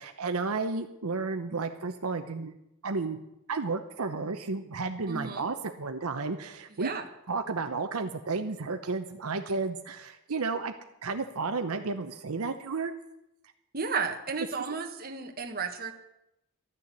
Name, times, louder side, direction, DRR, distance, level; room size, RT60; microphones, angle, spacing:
voice 1, 0.0-2.5 2.8-3.2 3.5-6.9 7.3-10.7 11.0-12.9, right 4 dB, 80° right, 7 dB, 0.8 m, -32 dB
voice 2, 5.1-5.5 6.8-7.1 13.7-15.9, right 5 dB, 40° right, 4 dB, 1.4 m, -33 dB
13.0 x 6.8 x 9.7 m, 0.86 s
head